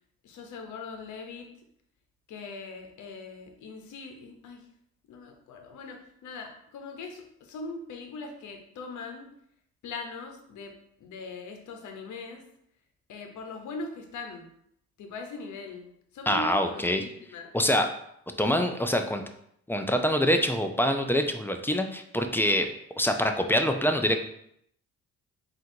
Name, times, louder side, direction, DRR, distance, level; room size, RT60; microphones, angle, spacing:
voice 1, 0.2-1.5 2.3-4.6 5.1-9.3 9.8-10.7 11.0-12.4 13.1-14.5 15.0-17.5, left 3 dB, 75° left, 4 dB, 0.9 m, -41 dB
voice 2, 16.3-17.0 17.5-17.9 18.4-19.2 19.7-22.7 23.0-24.2, equal, 5° left, 6 dB, 0.4 m, -25 dB
3.7 x 2.6 x 4.4 m, 0.71 s
cardioid pair, 90°, 30 cm